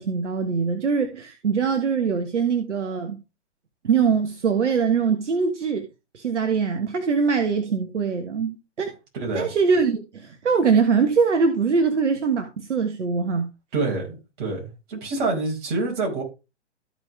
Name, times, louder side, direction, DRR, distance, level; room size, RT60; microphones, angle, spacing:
voice 1, 0.0-3.2 3.8-5.8 6.1-8.9 9.3-13.5, right 5 dB, 75° right, 1.4 m, -22 dB
voice 2, 9.1-9.5 13.7-16.2, right 3 dB, 45° right, 5.3 m, -27 dB
14.0 x 5.1 x 3.3 m
hypercardioid pair, 130°, 36 cm